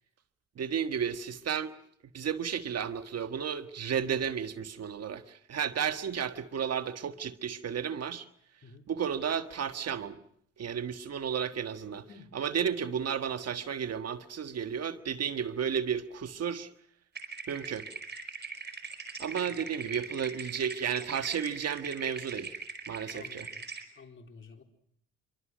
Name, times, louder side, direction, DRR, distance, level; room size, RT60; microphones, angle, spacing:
voice 1, 0.6-1.7 2.1-8.3 8.9-10.2 10.6-12.0 12.3-16.7 17.5-17.9 19.2-22.6 22.9-23.5, right 7 dB, 55° right, 1.6 m, -33 dB
sound 1, 17.1-23.8, right 4 dB, 35° right, 4.9 m, -41 dB
voice 2, 23.1-23.6 24.0-24.6, left 4 dB, 40° left, 4.1 m, -51 dB
27.0 x 23.5 x 6.3 m
cardioid pair, 90°, 30 cm